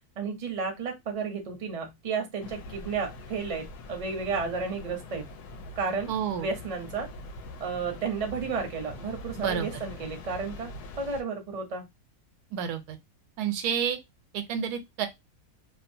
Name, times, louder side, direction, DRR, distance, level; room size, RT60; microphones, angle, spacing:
voice 1, 0.2-5.3 5.8-7.1 7.6-10.7 11.0-11.8, right 5 dB, 45° right, 0.5 m, -32 dB
sound 1, 2.4-11.2, left 2 dB, 85° left, 1.2 m, -43 dB
voice 2, 6.1-6.5 9.4-9.7 10.0-10.1 12.5-13.0 13.4-14.0 14.3-15.1, right 8 dB, 90° right, 1.1 m, -29 dB
2.9 x 2.1 x 2.6 m
omnidirectional pair, 1.6 m